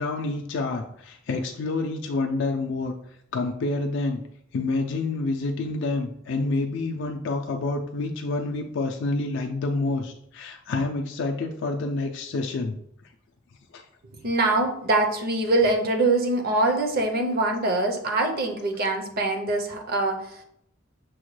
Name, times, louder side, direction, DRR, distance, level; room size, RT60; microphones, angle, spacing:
voice 1, 0.0-2.9 3.3-4.2 4.5-12.7 13.7-13.8, left 3 dB, 60° left, 3 dB, 0.3 m, -28 dB
voice 2, 14.2-20.4, right 2 dB, 50° right, 3 dB, 0.6 m, -24 dB
6.0 x 2.1 x 3.1 m, 0.71 s
head